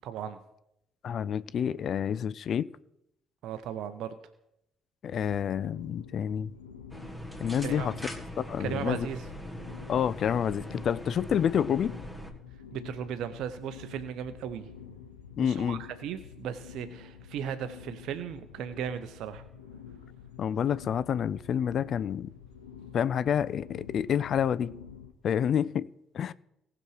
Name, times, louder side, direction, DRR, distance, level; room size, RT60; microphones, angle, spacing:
voice 1, 0.0-0.4 3.4-4.2 7.6-7.9 8.6-9.3 12.7-14.7 15.4-19.4, right 9 dB, 65° right, 0.6 m, -36 dB
voice 2, 1.0-2.7 5.0-6.5 7.4-7.9 8.4-9.1 9.9-11.9 15.4-15.8 20.4-22.3 22.9-24.7 25.2-25.9 26.1-26.3, left 8 dB, 55° left, 0.3 m, -28 dB
sound 1, 5.1-25.1, left 7 dB, 85° left, 0.8 m, -48 dB
sound 2, 6.9-12.3, equal, 5° left, 2.0 m, -41 dB
18.0 x 6.0 x 4.8 m
figure-of-eight pair, 45°, 0 cm